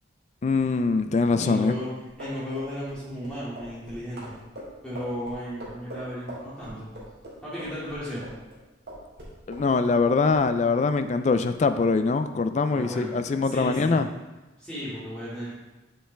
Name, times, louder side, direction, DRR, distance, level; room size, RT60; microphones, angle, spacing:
voice 1, 0.4-1.7 9.5-14.1, left 4 dB, 35° left, 10 dB, 0.3 m, -23 dB
voice 2, 1.4-1.9 2.2-4.4 4.8-6.9 7.4-8.2 12.7-13.1 13.4-14.0 14.6-15.5, equal, 5° left, -10 dB, 2.1 m, -34 dB
sound 1, 2.2-8.6 8.9-10.0 10.2-10.4, equal, 55° right, 2.0 m, -41 dB
7.9 x 5.4 x 3.4 m, 1.1 s
head